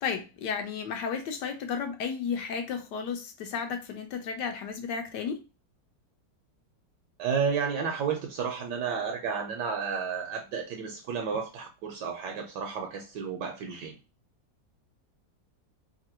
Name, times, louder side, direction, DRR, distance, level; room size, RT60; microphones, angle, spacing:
voice 1, 0.0-5.4, left 6 dB, 75° left, 1.2 m, -33 dB
voice 2, 7.2-14.0, right 6 dB, 75° right, 1.1 m, -32 dB
3.2 x 2.5 x 2.8 m
omnidirectional pair, 2.0 m